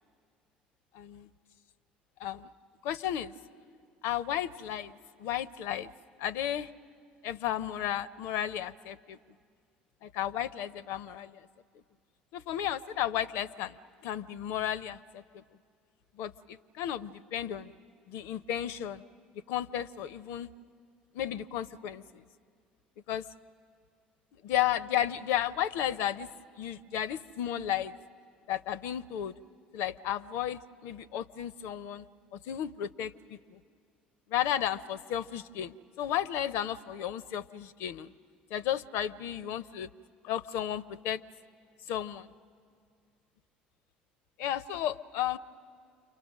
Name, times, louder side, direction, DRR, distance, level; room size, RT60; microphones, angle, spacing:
voice 1, 0.9-1.3 2.2-2.5 2.8-3.4 4.0-4.9 5.2-5.9 6.2-6.7 7.2-9.2 10.0-11.4 12.3-13.8 14.0-15.4 16.2-17.7 18.1-19.0 19.5-20.5 21.1-22.2 23.1-23.2 24.4-26.3 26.6-28.0 28.5-29.3 29.7-32.0 32.3-33.6 34.3-38.1 38.5-39.9 40.2-41.2 41.9-42.3 44.4-45.4, left 11 dB, 65° left, 15 dB, 0.5 m, -33 dB
28.5 x 24.0 x 6.3 m, 2.2 s
hypercardioid pair, 60°, 5 cm